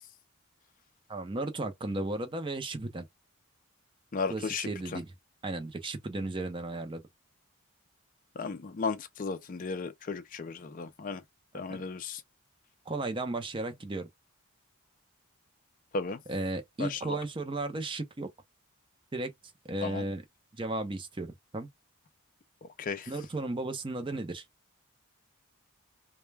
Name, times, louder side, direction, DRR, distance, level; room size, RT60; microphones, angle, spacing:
voice 1, 1.1-3.1 4.3-5.1 5.4-7.0 11.5-11.8 12.9-14.1 16.3-18.3 19.1-19.3 19.6-20.2 20.5-21.3 21.5-21.7 23.1-24.4, right 2 dB, 25° right, 0.5 m, -34 dB
voice 2, 4.1-5.0 8.4-11.2 11.5-12.2 15.9-16.2 16.8-17.2 19.8-20.0 22.6-23.1, left 4 dB, 40° left, 0.4 m, -35 dB
2.2 x 2.1 x 3.2 m
head